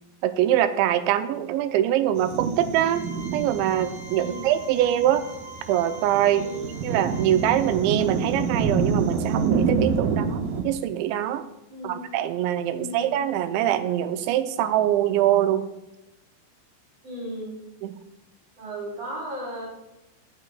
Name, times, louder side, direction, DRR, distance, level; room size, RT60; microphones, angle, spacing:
voice 1, 0.2-3.0 3.3-5.2 5.7-6.5 6.8-10.4 10.6-11.5 11.8-15.7 17.8-17.9, right 12 dB, 90° right, 10 dB, 3.0 m, -23 dB
sound 1, 2.2-10.6, right 5 dB, 75° right, 2.0 m, -28 dB
sound 2, 2.7-8.0, right 1 dB, 5° right, 2.7 m, -45 dB
voice 2, 6.3-6.8 11.7-12.1 12.7-13.1 17.0-17.5 18.6-19.7, equal, 35° right, -4 dB, 5.4 m, -36 dB
21.5 x 8.8 x 2.3 m, 0.95 s
omnidirectional pair, 5.1 m